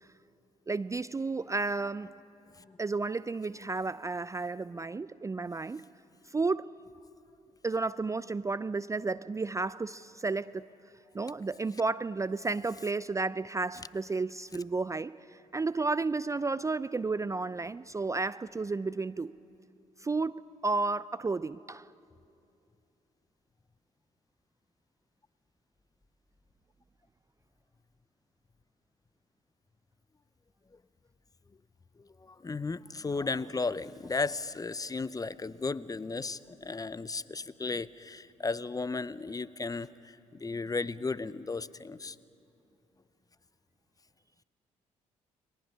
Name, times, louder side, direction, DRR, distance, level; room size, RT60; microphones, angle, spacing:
voice 1, 0.7-2.2 2.8-5.9 6.3-6.8 7.6-10.6 11.1-19.3 20.0-21.9, right 3 dB, 20° right, 0.4 m, -32 dB
voice 2, 32.2-42.2, left 3 dB, 20° left, 0.7 m, -35 dB
29.5 x 23.0 x 5.6 m
hypercardioid pair, 45°, 17 cm